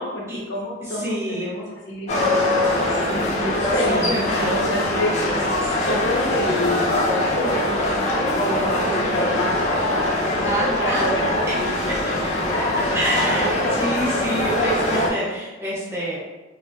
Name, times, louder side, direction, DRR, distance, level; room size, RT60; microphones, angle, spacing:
voice 1, 0.0-5.5 5.8-12.8, left 1 dB, 70° left, -3 dB, 0.6 m, -29 dB
voice 2, 0.8-1.5 3.8-4.5 5.6-6.0 10.4-11.1 12.9-16.2, equal, 15° right, -8 dB, 0.7 m, -27 dB
sound 1, 2.1-15.1, left 1 dB, 35° left, 0.3 m, -22 dB
2.2 x 2.0 x 2.9 m, 1.2 s
head